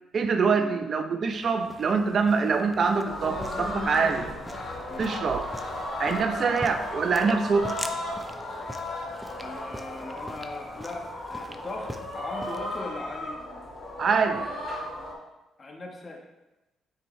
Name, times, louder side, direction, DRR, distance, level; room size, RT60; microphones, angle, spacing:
voice 1, 0.1-4.3 5.0-5.5 6.0-7.8 14.0-14.5, right 5 dB, 55° right, 7 dB, 0.7 m, -25 dB
sound 1, 1.3-12.8, right 1 dB, 5° right, 0.6 m, -44 dB
sound 2, 3.0-15.1, left 1 dB, 55° left, 2.3 m, -35 dB
voice 2, 9.4-13.4 15.6-16.3, left 2 dB, 35° left, 2 dB, 1.3 m, -39 dB
8.3 x 4.7 x 3.2 m, 1.0 s
supercardioid pair, 70°, 0 cm